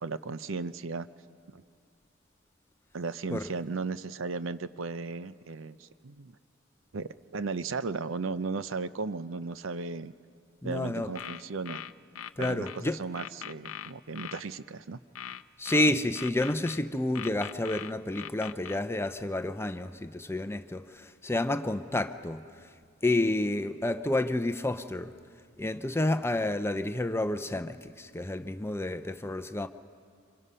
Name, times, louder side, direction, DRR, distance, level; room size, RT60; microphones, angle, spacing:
voice 1, 0.0-1.1 1.5-1.6 2.9-6.3 6.9-10.1 10.6-11.8 12.4-15.0, right 4 dB, 70° right, 14 dB, 0.6 m, -35 dB
voice 2, 10.6-11.1 12.4-13.0 15.6-22.4 23.0-25.1 25.6-29.7, left 1 dB, 10° left, 10 dB, 0.6 m, -30 dB
sound 1, 11.0-12.8 13.2-14.4 15.2-16.8 17.2-18.8, left 10 dB, 85° left, 0.5 m, -40 dB
26.5 x 25.5 x 5.6 m, 2.3 s
head